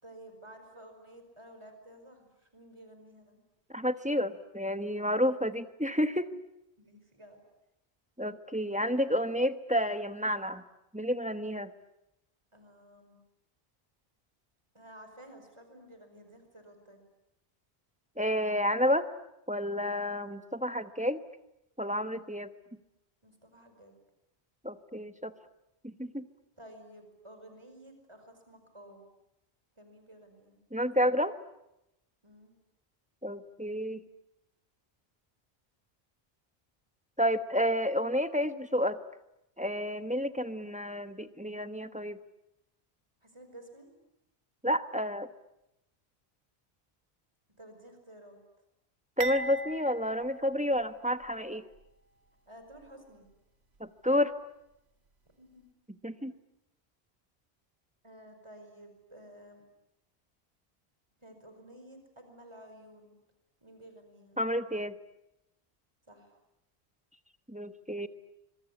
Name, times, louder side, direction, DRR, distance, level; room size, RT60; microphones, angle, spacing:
voice 1, 0.0-3.4 6.8-7.4 12.5-13.2 14.7-17.0 23.2-24.0 26.6-29.0 29.8-30.6 32.2-32.5 43.2-43.9 47.6-48.4 52.5-53.3 55.4-55.6 58.0-59.6 61.2-63.2 63.6-64.4 66.1-66.4, right 1 dB, 25° right, 6 dB, 5.1 m, -53 dB
voice 2, 3.7-6.3 8.2-10.6 10.9-11.7 18.2-19.1 19.5-21.2 21.8-22.5 24.6-25.3 25.8-26.3 30.7-31.3 33.2-34.0 37.2-39.0 39.6-42.2 44.6-45.3 49.2-51.6 53.8-54.3 56.0-56.3 64.4-64.9 67.5-68.1, equal, 5° right, 10 dB, 1.1 m, -30 dB
sound 1, 49.2-51.4 51.7-51.9 52.7-52.9, right 2 dB, 85° right, 2.0 m, -39 dB
26.0 x 23.5 x 9.9 m, 0.88 s
omnidirectional pair, 1.1 m